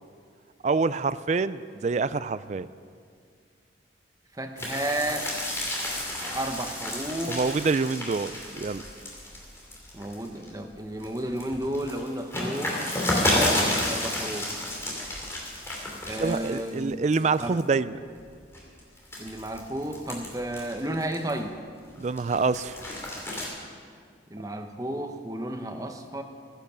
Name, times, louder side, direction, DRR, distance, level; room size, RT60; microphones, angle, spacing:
voice 1, 0.6-2.7 7.3-8.8 16.2-18.0 22.0-22.8, right 4 dB, 40° right, 15 dB, 0.3 m, -26 dB
voice 2, 4.3-5.3 6.2-7.4 9.9-13.0 13.3-14.5 16.1-17.0 17.4-17.6 19.2-21.6 24.3-26.2, right 1 dB, 20° right, 5 dB, 0.9 m, -32 dB
sound 1, 4.6-10.5 10.9-16.8 17.1-17.6 18.2-21.5 21.9-23.5, left 1 dB, 15° left, 2.8 m, -31 dB
14.5 x 10.5 x 6.8 m, 2.1 s
head